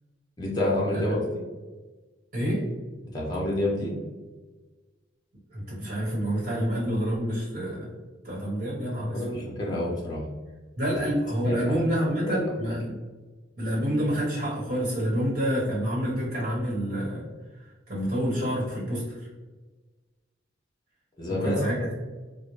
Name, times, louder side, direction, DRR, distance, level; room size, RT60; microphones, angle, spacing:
voice 1, 0.4-1.4 3.1-3.9 9.1-10.2 11.4-11.8 12.2-12.7 21.2-21.9, left 1 dB, 20° left, -4 dB, 0.6 m, -28 dB
voice 2, 2.3-2.6 5.5-7.9 8.2-9.4 10.8-13.0 13.6-17.3 17.9-19.2 21.3-21.9, equal, 40° right, -7 dB, 1.2 m, -28 dB
4.0 x 2.0 x 3.2 m, 1.3 s
head